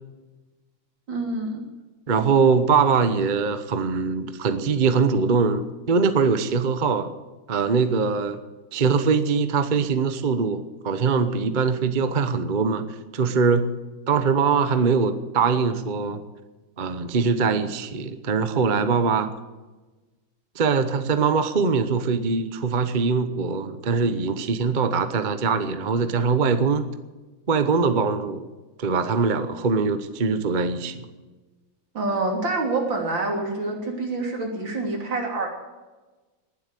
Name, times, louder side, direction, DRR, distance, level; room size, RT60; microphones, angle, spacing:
voice 1, 1.1-1.6 31.9-35.5, right 2 dB, 70° right, 0 dB, 3.9 m, -27 dB
voice 2, 2.1-7.1 7.5-8.4 8.7-12.8 13.1-13.7 14.1-16.2 16.8-19.3 20.6-26.9 27.5-28.5 28.8-31.1, right 5 dB, 40° right, 10 dB, 0.7 m, -22 dB
19.5 x 8.0 x 8.3 m, 1.2 s
omnidirectional pair, 2.2 m